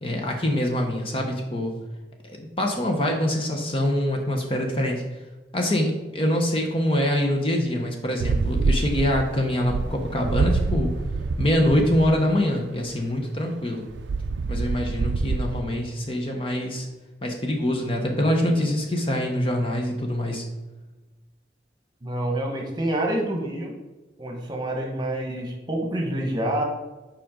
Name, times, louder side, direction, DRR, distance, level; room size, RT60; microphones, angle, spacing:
voice 1, 0.0-1.7 2.2-5.0 5.5-10.9 11.4-13.9 14.5-16.9 17.2-20.5, left 1 dB, 30° left, 2 dB, 0.8 m, -24 dB
sound 1, 8.2-12.1 13.9-15.6, right 3 dB, 85° right, 0.4 m, -26 dB
voice 2, 22.0-23.7 24.2-26.6, right 1 dB, 25° right, 1 dB, 1.2 m, -27 dB
7.4 x 5.1 x 3.7 m, 1.2 s
head